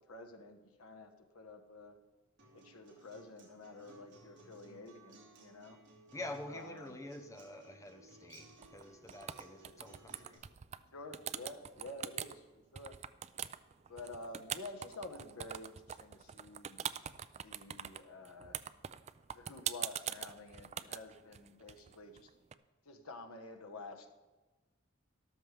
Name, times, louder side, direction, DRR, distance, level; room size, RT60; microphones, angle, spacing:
voice 1, 0.1-1.9 2.5-5.8 6.5-7.0 10.9-12.4 12.7-13.0 13.9-16.9 17.3-18.6 19.3-22.3 22.8-24.1, left 2 dB, 85° left, 4 dB, 1.3 m, -50 dB
Acoustic guitar, 2.4-10.4, right 1 dB, 55° right, 2.6 m, -60 dB
voice 2, 6.1-10.4, left 1 dB, 15° left, 6 dB, 0.9 m, -47 dB
sound 1, 8.6-8.8 9.1-10.8 11.1-12.3 12.8-22.5, right 9 dB, 30° right, 0.3 m, -42 dB
13.0 x 12.5 x 3.4 m, 1.2 s
head